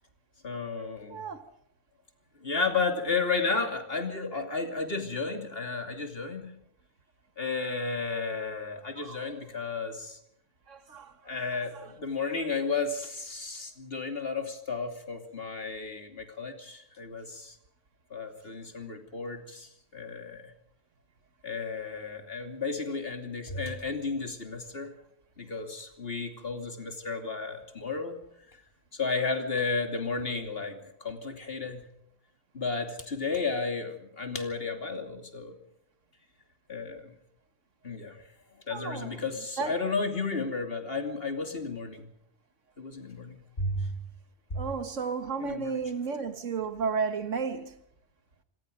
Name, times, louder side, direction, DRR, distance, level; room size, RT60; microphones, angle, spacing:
voice 1, 0.4-1.2 2.4-6.5 7.4-10.2 11.3-17.5 18.1-20.5 21.4-24.9 25.4-28.2 28.9-31.9 32.5-35.6 36.7-37.2 37.8-38.2 38.7-42.1 42.8-43.9 44.5-44.6 45.4-45.8, left 4 dB, 50° left, 3.0 m, -33 dB
voice 2, 1.1-1.4 9.0-9.3 10.7-11.3 38.7-39.1 39.6-39.8 44.5-47.8, right 5 dB, 80° right, 1.9 m, -33 dB
26.5 x 19.0 x 5.2 m
omnidirectional pair, 1.2 m